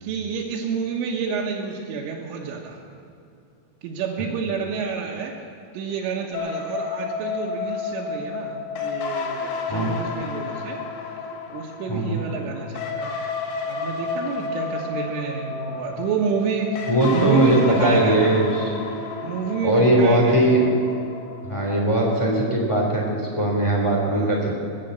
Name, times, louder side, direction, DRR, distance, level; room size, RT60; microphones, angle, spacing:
voice 1, 0.0-2.8 3.8-5.4 5.7-10.8 11.5-13.2 13.6-18.4 19.2-20.5 24.1-24.4, right 5 dB, 90° right, -1 dB, 3.7 m, -29 dB
sound 1, 6.3-21.9, left 5 dB, 70° left, 4.1 m, -31 dB
voice 2, 11.9-12.2 16.9-18.7 19.6-20.7 21.4-24.7, right 1 dB, 15° left, -1 dB, 1.1 m, -20 dB
21.0 x 8.5 x 7.8 m, 2.6 s
omnidirectional pair, 5.5 m